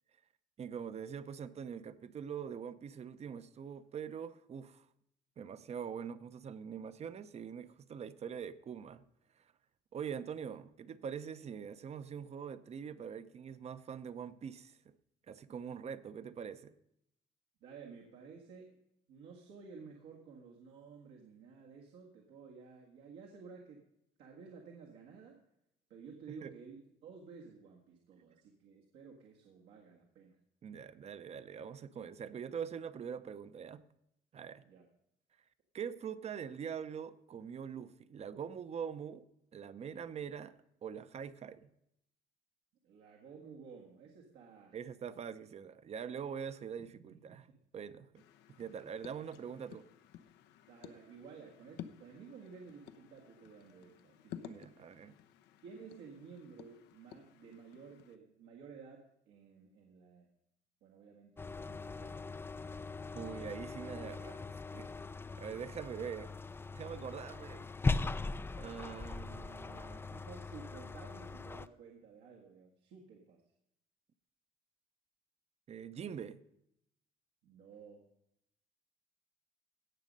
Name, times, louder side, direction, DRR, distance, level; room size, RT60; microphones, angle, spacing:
voice 1, 0.6-4.9 5.4-9.0 9.4-9.5 9.9-14.9 15.3-16.7 26.3-26.5 30.6-33.8 34.3-34.6 35.7-39.2 39.5-41.7 44.7-47.4 47.7-48.2 48.6-49.8 54.4-55.2 63.1-65.0 65.4-66.3 66.7-67.7 68.6-70.2 75.7-76.4, right 7 dB, 40° right, 14 dB, 0.7 m, -44 dB
voice 2, 17.6-18.8 19.1-23.8 24.2-25.4 25.9-30.4 34.6-34.9 42.8-44.8 47.3-47.4 50.7-54.6 55.6-60.3 60.8-62.3 70.0-73.4 77.4-78.1, right 5 dB, 80° right, -1 dB, 1.8 m, -54 dB
sound 1, 48.1-58.2, left 10 dB, 85° left, 0.8 m, -54 dB
sound 2, 61.4-71.7, left 3 dB, 15° left, 0.4 m, -40 dB
17.0 x 6.3 x 5.4 m, 0.78 s
cardioid pair, 110°, 17 cm